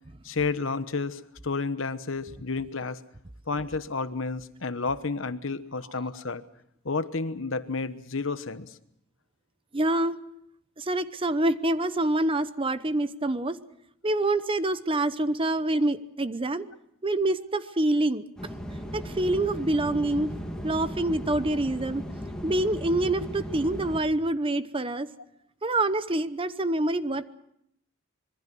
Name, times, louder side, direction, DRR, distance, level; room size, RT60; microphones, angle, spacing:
voice 1, 0.2-3.0 3.5-6.4 6.8-8.8, left 4 dB, 65° left, 12 dB, 1.2 m, -31 dB
voice 2, 9.7-10.2 10.8-13.6 14.0-16.7 17.0-18.2 18.9-20.3 20.6-22.0 22.4-25.1 25.6-27.3, right 1 dB, 25° right, 13 dB, 0.9 m, -26 dB
sound 1, 18.4-24.0, equal, 5° left, 3.0 m, -36 dB
26.0 x 22.0 x 6.2 m, 0.74 s
head